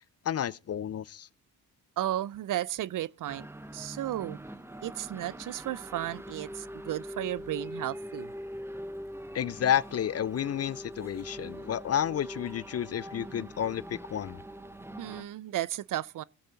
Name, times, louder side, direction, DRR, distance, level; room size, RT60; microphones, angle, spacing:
voice 1, 0.2-1.3 9.3-14.4, left 10 dB, 40° left, 0.5 m, -31 dB
voice 2, 2.0-3.5 3.7-4.4 4.8-8.3 15.0-16.2, right 13 dB, 55° right, 0.5 m, -34 dB
sound 1, 3.3-15.2, equal, 5° right, 0.9 m, -43 dB
18.0 x 8.1 x 3.9 m
cardioid pair, 70°, 38 cm